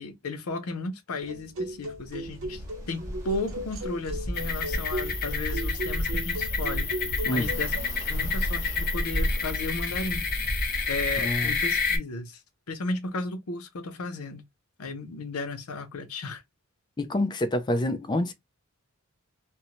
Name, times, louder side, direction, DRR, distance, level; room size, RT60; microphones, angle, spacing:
voice 1, 0.0-2.6 2.9-6.9 7.3-7.7 8.0-10.3 10.9-12.4 12.7-14.4 14.8-16.4, left 3 dB, 80° left, 0.6 m, -34 dB
sound 1, 1.2-8.0, right 1 dB, 65° right, 0.6 m, -37 dB
Ocean, 1.9-11.8, equal, 15° right, 1.0 m, -36 dB
sound 2, 4.3-12.0, left 4 dB, 45° left, 0.8 m, -29 dB
voice 2, 11.2-11.5 17.0-18.3, left 1 dB, 20° left, 0.3 m, -27 dB
2.6 x 2.1 x 2.8 m
head